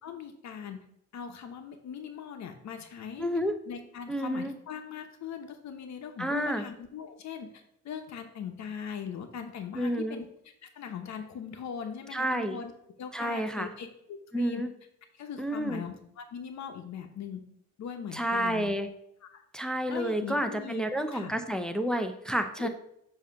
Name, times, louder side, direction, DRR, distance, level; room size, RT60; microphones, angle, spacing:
voice 1, 0.0-0.8 1.1-3.3 3.7-10.3 10.6-12.7 13.0-14.6 15.1-17.4 17.8-18.7 19.3-19.4 19.9-21.4 22.6-22.7, left 7 dB, 65° left, 6 dB, 0.9 m, -40 dB
voice 2, 3.2-3.5 4.1-4.5 6.2-6.6 9.7-10.2 12.1-12.6 13.1-13.7 14.3-14.7 15.4-15.8 18.1-18.9 19.5-22.7, equal, ahead, 6 dB, 0.6 m, -30 dB
7.1 x 2.9 x 5.7 m, 0.74 s
cardioid pair, 90°, 30 cm